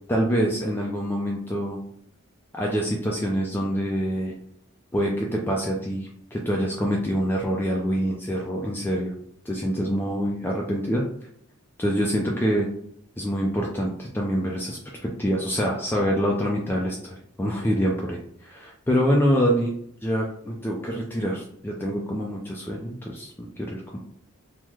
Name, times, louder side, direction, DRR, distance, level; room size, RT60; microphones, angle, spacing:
voice 1, 0.1-1.8 2.5-4.3 4.9-9.1 9.5-11.0 11.8-12.7 13.2-19.7 20.0-24.0, equal, 10° left, -2 dB, 0.3 m, -26 dB
3.0 x 2.1 x 3.5 m, 0.67 s
head